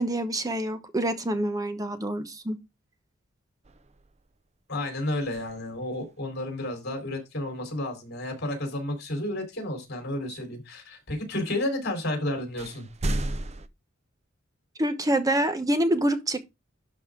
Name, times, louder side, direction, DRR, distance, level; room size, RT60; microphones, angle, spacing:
voice 1, 0.0-2.6 14.8-16.5, right 1 dB, 20° right, 0.9 m, -26 dB
sound 1, 3.6-4.4 5.2-6.1 9.7-9.8 11.8-11.9 12.6-13.7, right 1 dB, 35° right, 0.6 m, -34 dB
voice 2, 4.7-12.9, left 1 dB, 55° left, 3.9 m, -31 dB
11.5 x 4.9 x 3.7 m
head